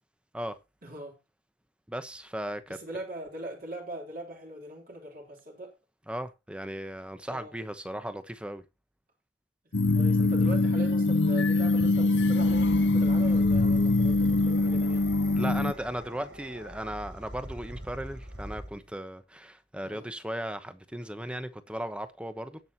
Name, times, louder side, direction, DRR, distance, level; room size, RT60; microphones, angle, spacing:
voice 1, 0.8-1.2 2.7-5.8 7.3-7.5 9.9-15.0 19.8-20.1, right 1 dB, 50° right, 3.2 m, -41 dB
voice 2, 1.9-2.8 6.1-8.6 15.3-22.6, right 1 dB, 5° right, 1.0 m, -36 dB
sound 1, 9.7-15.7, left 2 dB, 70° left, 0.8 m, -23 dB
sound 2, 12.1-18.9, equal, 80° right, 4.9 m, -43 dB
18.5 x 6.3 x 2.8 m
head